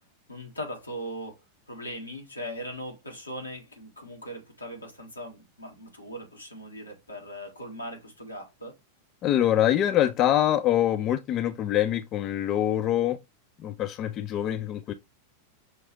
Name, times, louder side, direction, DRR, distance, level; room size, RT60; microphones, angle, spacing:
voice 1, 0.3-1.4 1.7-8.7, equal, 80° left, 1.6 m, -39 dB
voice 2, 9.2-13.2 13.6-14.9, left 12 dB, 35° left, 0.3 m, -24 dB
6.2 x 2.7 x 3.1 m
figure-of-eight pair, 90°, 0 cm